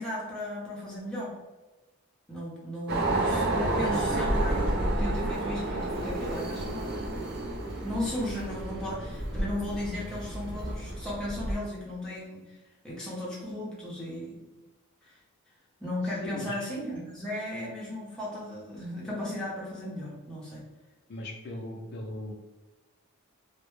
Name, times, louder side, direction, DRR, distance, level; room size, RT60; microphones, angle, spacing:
voice 1, 0.0-1.3 2.3-7.2 7.8-12.6 12.8-14.4 15.0-15.2 15.8-20.6, left 1 dB, 5° left, -7 dB, 0.6 m, -36 dB
sound 1, 2.9-11.5, right 1 dB, 45° right, 0.4 m, -30 dB
voice 2, 16.0-16.6 21.1-22.3, left 1 dB, 50° left, 0 dB, 0.4 m, -39 dB
2.1 x 2.0 x 3.0 m, 1.1 s
head